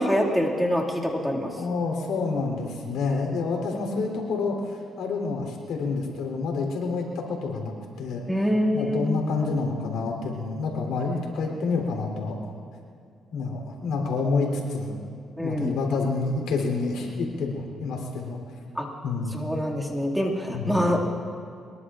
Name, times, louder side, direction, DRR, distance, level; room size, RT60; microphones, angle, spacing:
voice 1, 0.0-1.6 8.3-9.1 15.4-15.7 18.8-18.9 19.3-21.0, equal, ahead, -2 dB, 2.2 m, -25 dB
voice 2, 1.6-8.3 8.7-12.5 13.3-14.9 15.4-18.4 19.0-19.3 20.5-20.8, left 4 dB, 85° left, 0 dB, 3.4 m, -28 dB
23.5 x 22.0 x 2.5 m, 2.4 s
cardioid pair, 90°, 0 cm